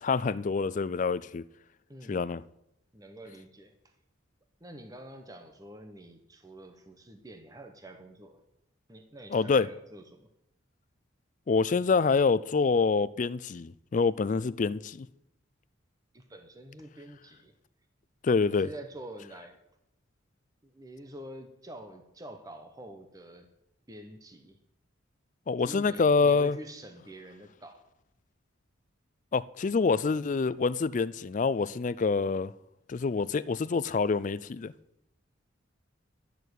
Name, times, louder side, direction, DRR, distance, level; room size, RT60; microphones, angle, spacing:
voice 1, 0.0-1.4 2.1-2.4 9.3-9.7 11.5-15.1 18.2-18.7 25.5-26.6 29.3-32.5 32.9-34.7, left 4 dB, 40° left, 0.3 m, -26 dB
voice 2, 1.9-2.4 2.9-3.8 4.6-8.4 8.9-10.3 16.1-17.5 18.4-19.6 20.6-23.5 23.9-24.6 25.6-27.8, right 1 dB, 15° right, 0.9 m, -47 dB
11.0 x 6.9 x 8.1 m
head